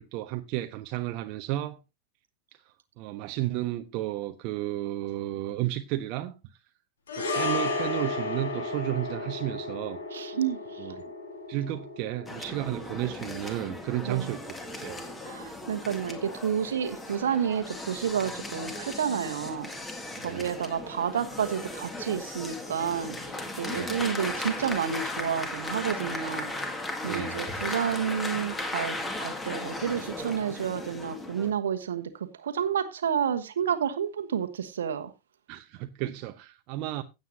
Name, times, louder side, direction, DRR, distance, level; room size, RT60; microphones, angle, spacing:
voice 1, 0.0-1.8 3.0-6.3 7.2-10.0 10.8-11.0 11.5-15.0 20.2-20.5 23.7-23.9 27.0-27.4 35.5-37.0, right 15 dB, 40° right, 0.7 m, -33 dB
sound 1, 7.1-15.5 15.8-16.0, left 3 dB, 65° left, 2.5 m, -34 dB
voice 2, 10.1-10.8 14.0-14.3 15.2-19.7 20.2-23.2 23.6-26.5 27.0-35.1, right 8 dB, 65° right, 1.2 m, -30 dB
sound 2, 12.3-31.5, left 2 dB, 15° left, 2.0 m, -36 dB
16.5 x 8.1 x 2.7 m
figure-of-eight pair, 90°, 0 cm